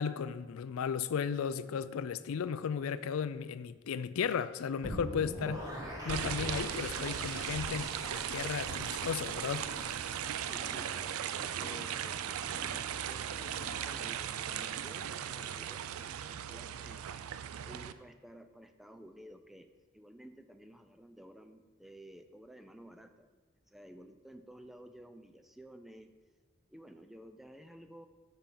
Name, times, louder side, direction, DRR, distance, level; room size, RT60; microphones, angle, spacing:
voice 1, 0.0-5.7 6.0-9.7, left 7 dB, 80° left, 15 dB, 0.4 m, -35 dB
sound 1, 4.8-10.9, equal, 15° right, 1.2 m, -43 dB
sound 2, 6.1-17.9, right 9 dB, 90° right, 0.4 m, -38 dB
sound 3, 7.6-14.2, left 1 dB, 65° left, 1.0 m, -52 dB
voice 2, 10.4-12.4 13.1-17.1 17.6-19.7 19.9-23.3 23.7-26.1 26.7-28.1, right 1 dB, ahead, 7 dB, 0.3 m, -53 dB
8.9 x 5.6 x 3.8 m, 1.3 s
head